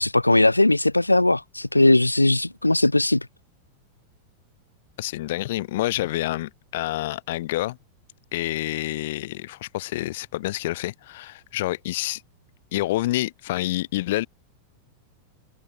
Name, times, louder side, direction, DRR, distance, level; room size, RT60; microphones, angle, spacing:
voice 1, 0.0-3.2, left 2 dB, 85° left, 3.1 m, -19 dB
voice 2, 5.0-7.8 8.3-12.2 12.7-14.3, left 16 dB, 55° left, 6.3 m, -28 dB
figure-of-eight pair, 90°, 0 cm